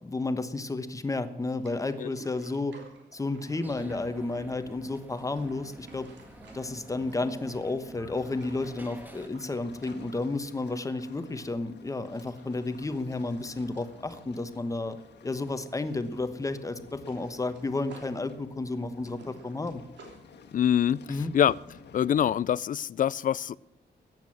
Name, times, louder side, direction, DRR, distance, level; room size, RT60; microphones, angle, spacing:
voice 1, 0.0-2.7 3.1-6.1 6.5-15.0 15.2-19.8 21.1-21.3, left 2 dB, 20° left, 1.1 m, -32 dB
sound 1, 1.5-4.5 5.0-7.8 8.1-11.0 11.3-11.5 11.9-15.7 15.9-16.1 16.4-20.2, right 3 dB, 85° right, 3.1 m, -54 dB
sound 2, 3.6-9.3, right 1 dB, 10° right, 1.7 m, -47 dB
sound 3, 8.1-22.6, left 5 dB, 75° left, 1.7 m, -52 dB
voice 2, 20.5-21.5 21.9-23.6, left 9 dB, 50° left, 0.4 m, -25 dB
14.0 x 9.2 x 7.5 m
wide cardioid pair, 135°, 18 cm